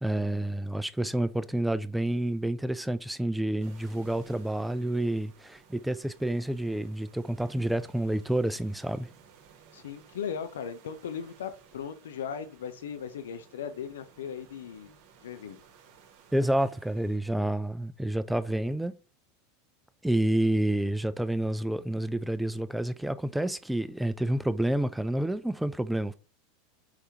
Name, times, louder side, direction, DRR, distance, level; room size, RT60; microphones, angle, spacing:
voice 1, 0.0-9.1 16.3-18.9 20.0-26.1, right 1 dB, 5° right, 0.3 m, -29 dB
sound 1, 3.6-17.2, right 7 dB, 55° right, 0.9 m, -58 dB
voice 2, 9.7-14.9 15.2-15.6, left 7 dB, 70° left, 0.4 m, -38 dB
4.8 x 3.4 x 2.8 m
figure-of-eight pair, 85°, 0 cm